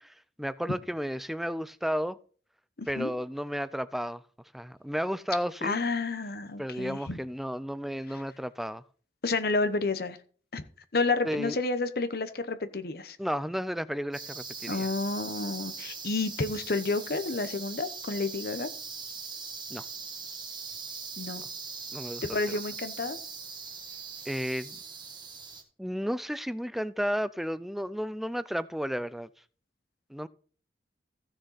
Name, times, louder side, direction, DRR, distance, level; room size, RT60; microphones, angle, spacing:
voice 1, 0.4-2.2 2.9-4.2 4.5-5.8 6.6-8.8 11.2-11.6 13.2-14.9 19.7-19.8 21.9-22.6 24.3-24.8 25.8-29.3 30.1-30.3, equal, ahead, 0.4 m, -33 dB
voice 2, 2.8-3.1 5.6-7.2 8.1-8.2 9.2-10.2 10.5-10.6 10.9-13.2 14.7-18.7 21.2-21.4 22.2-23.2, left 3 dB, 60° left, 0.9 m, -30 dB
sound 1, 14.1-25.6, right 5 dB, 25° right, 1.6 m, -41 dB
15.0 x 6.5 x 4.1 m
head